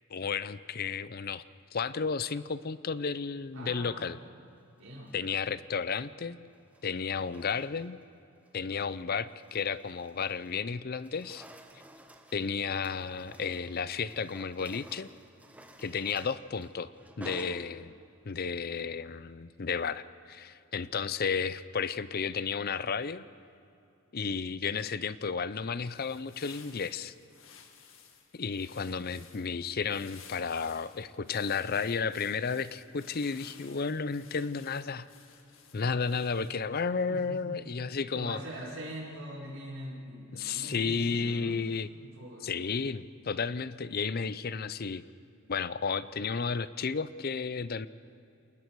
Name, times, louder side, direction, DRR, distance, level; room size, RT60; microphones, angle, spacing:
voice 1, 0.1-1.4 1.7-4.2 5.1-6.4 6.8-8.0 8.5-11.5 12.3-15.1 15.8-16.9 17.2-17.9 18.2-23.2 24.1-27.1 28.3-35.1 35.7-38.4 40.3-41.9 42.4-45.0 45.5-47.9, left 5 dB, 45° left, 15 dB, 0.6 m, -33 dB
voice 2, 3.5-4.1 4.8-5.1 37.1-37.6 38.1-41.6 42.0-42.5, equal, 80° right, -4 dB, 5.2 m, -42 dB
sound 1, 4.9-5.4 6.5-8.0 8.5-8.7 9.2-10.6 10.9-18.2, right 1 dB, 5° right, 1.1 m, -53 dB
sound 2, 25.7-36.7, left 6 dB, 70° left, 1.9 m, -55 dB
28.5 x 20.0 x 4.7 m, 2.6 s
head